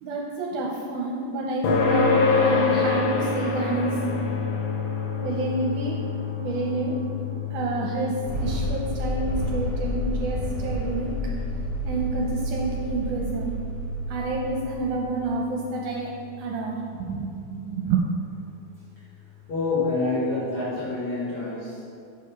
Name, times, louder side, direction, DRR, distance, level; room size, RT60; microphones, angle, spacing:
voice 1, 0.0-4.0 5.2-6.0 6.4-7.0 7.5-11.1 11.8-13.5 14.1-16.1 16.4-18.1, right 3 dB, 75° right, -2 dB, 2.1 m, -28 dB
sound 1, 1.6-16.6, left 5 dB, 90° left, 2.5 m, -28 dB
sound 2, 8.3-15.1, right 1 dB, 50° right, 2.0 m, -30 dB
voice 2, 19.5-21.8, left 3 dB, 60° left, -10 dB, 2.7 m, -27 dB
6.8 x 4.8 x 5.3 m, 2.4 s
omnidirectional pair, 3.7 m